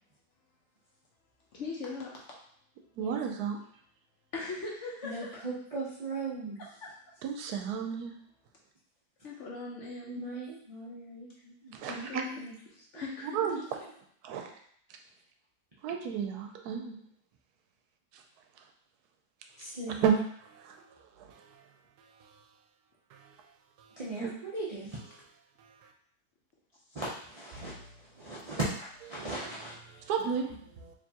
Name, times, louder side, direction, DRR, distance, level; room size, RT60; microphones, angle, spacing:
voice 1, 1.5-2.2 4.3-5.4 6.8-6.9 9.2-10.3 11.9-12.3 12.9-13.4, left 3 dB, 60° left, -3 dB, 0.9 m, -39 dB
voice 2, 3.0-3.6 7.2-8.1 11.7-12.2 13.2-13.8 14.2-14.5 15.8-17.0 18.1-18.2 18.6-18.7 19.6-19.7 20.0-22.4 23.1-24.3 25.6-25.9 29.1-29.3 29.8-30.9, right 7 dB, 75° right, 4 dB, 1.1 m, -34 dB
voice 3, 5.0-6.6 10.1-12.5 19.6-20.0 24.0-25.0 26.9-29.8, right 2 dB, 55° right, -7 dB, 0.4 m, -38 dB
4.5 x 2.8 x 2.8 m, 0.64 s
omnidirectional pair, 1.7 m